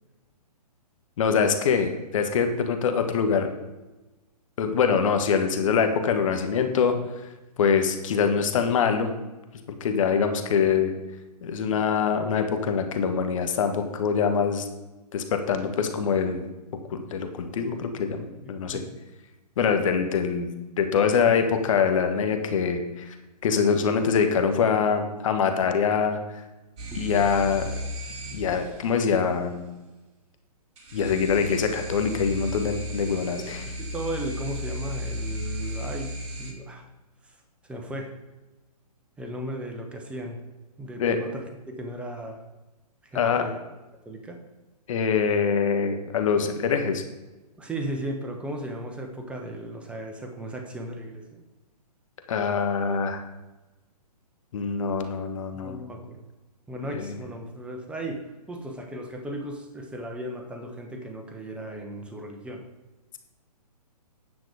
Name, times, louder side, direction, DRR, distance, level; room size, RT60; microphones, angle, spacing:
voice 1, 1.2-3.5 4.6-6.9 7.6-9.1 9.8-10.9 11.4-14.6 15.1-16.4 16.9-18.8 19.6-20.5 20.8-23.1 23.4-26.2 26.9-27.7 28.3-29.7 30.9-33.7 41.0-41.2 43.1-43.5 44.9-47.0 52.3-53.2 54.5-55.8 56.9-57.2, left 6 dB, 50° left, 6 dB, 1.4 m, -24 dB
voice 2, 18.4-19.0 33.5-36.1 36.4-36.8 37.7-38.1 39.2-40.4 40.8-42.4 43.0-43.6 44.0-44.4 46.3-46.5 47.6-51.4 55.5-56.3 56.7-62.6, right 1 dB, 5° right, 3 dB, 0.9 m, -36 dB
sound 1, 26.8-29.1 30.8-36.5, left 1 dB, 45° right, 2.3 m, -34 dB
9.6 x 6.0 x 4.9 m, 1.1 s
hypercardioid pair, 135°, 21 cm